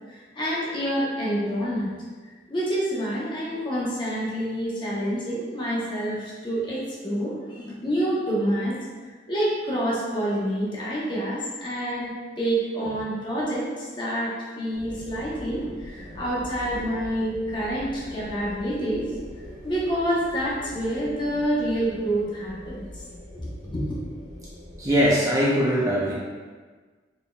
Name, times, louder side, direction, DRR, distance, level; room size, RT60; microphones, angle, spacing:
voice 1, 0.1-1.9 2.5-8.8 9.3-19.0 19.6-23.0 23.3-24.0, equal, 25° left, -6 dB, 0.9 m, -27 dB
sound 1, 14.7-25.1, equal, 35° right, 1.4 m, -43 dB
voice 2, 24.4-26.1, equal, 20° right, -6 dB, 0.5 m, -22 dB
4.1 x 3.6 x 2.3 m, 1.4 s
head